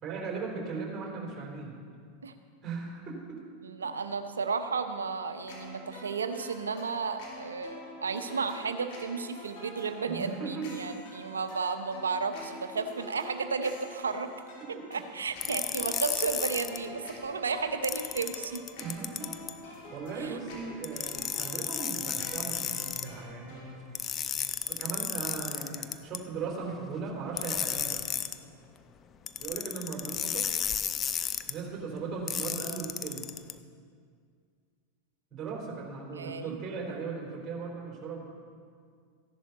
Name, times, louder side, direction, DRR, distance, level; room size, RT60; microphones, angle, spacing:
voice 1, 0.0-1.8 2.6-3.4 10.0-11.0 14.6-14.8 18.8-23.8 24.7-28.0 29.4-30.5 31.5-33.3 35.3-38.2, right 4 dB, 30° right, -2 dB, 3.9 m, -38 dB
voice 2, 3.6-14.3 14.9-18.6 20.2-20.4 36.2-36.6, right 5 dB, 80° right, 9 dB, 0.8 m, -33 dB
sound 1, 5.5-23.8, left 1 dB, 55° left, 3.4 m, -47 dB
sound 2, 15.4-16.8 17.8-19.5 20.8-23.1 24.0-26.2 27.4-28.4 29.3-31.5 32.3-33.5, left 8 dB, 30° left, 0.6 m, -33 dB
15.0 x 11.0 x 4.1 m, 2.1 s
figure-of-eight pair, 90°, 0 cm